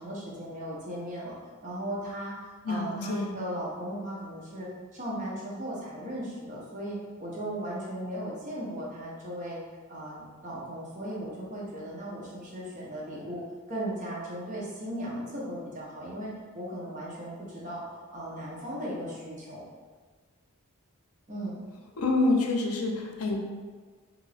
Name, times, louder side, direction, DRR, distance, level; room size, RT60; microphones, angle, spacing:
voice 1, 0.0-1.4 1.6-2.3 2.7-9.6 9.9-13.4 13.7-17.8 18.1-19.6 21.3-21.6, right 1 dB, 35° right, -5 dB, 0.6 m, -37 dB
voice 2, 2.6-3.3 22.0-23.4, left 2 dB, 85° left, 2 dB, 0.5 m, -27 dB
2.7 x 2.5 x 3.2 m, 1.5 s
head